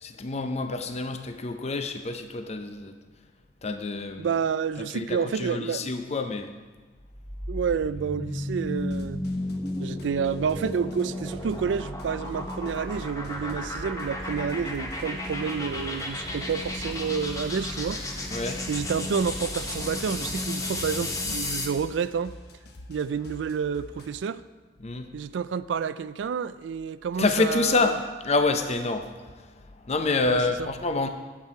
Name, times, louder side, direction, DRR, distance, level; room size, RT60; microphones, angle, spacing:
voice 1, 0.0-3.0 3.6-4.3 4.8-6.5 18.3-18.7 24.8-25.2 27.2-31.1, left 3 dB, 35° left, 7 dB, 0.6 m, -28 dB
voice 2, 4.2-5.9 7.5-9.2 9.8-18.0 18.7-22.3 22.9-24.4 25.1-27.9 30.3-30.7, right 6 dB, 75° right, 15 dB, 0.4 m, -29 dB
sound 1, 7.0-21.8, left 1 dB, 20° left, 1.0 m, -33 dB
sound 2, 8.8-24.2, left 1 dB, 60° left, 1.1 m, -47 dB
11.5 x 8.3 x 4.7 m, 1.3 s
head